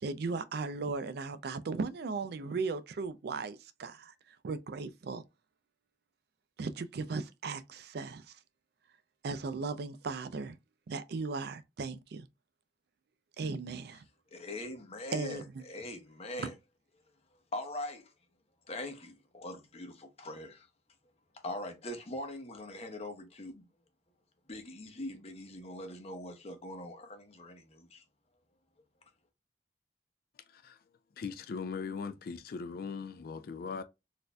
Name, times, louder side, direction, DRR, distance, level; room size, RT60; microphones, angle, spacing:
voice 1, 0.0-5.2 6.6-8.3 9.2-10.6 10.9-12.3 13.4-14.0 15.1-15.6 16.4-16.5, right 4 dB, 65° right, 0.4 m, -37 dB
voice 2, 14.3-16.5 17.5-18.1 18.7-20.7 21.4-23.6 24.5-28.0, left 1 dB, 35° left, 0.8 m, -42 dB
voice 3, 31.2-33.8, left 5 dB, 55° left, 0.4 m, -39 dB
4.1 x 2.6 x 2.3 m
head